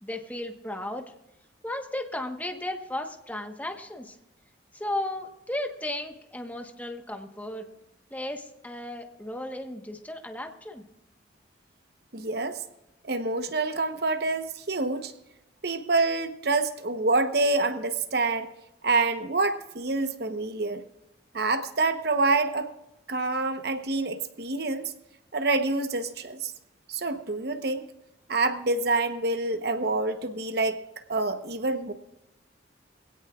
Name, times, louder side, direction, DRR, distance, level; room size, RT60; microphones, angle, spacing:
voice 1, 0.0-1.0 1.6-4.2 4.7-7.7 8.1-10.8, left 1 dB, 10° left, 4 dB, 1.2 m, -35 dB
voice 2, 12.1-12.6 13.0-15.1 15.6-18.5 18.8-20.8 21.3-22.7 23.1-24.9 25.3-26.5 26.9-27.8 28.3-30.8 31.1-31.9, right 3 dB, 55° right, 8 dB, 1.0 m, -27 dB
22.0 x 17.0 x 2.4 m, 0.89 s
head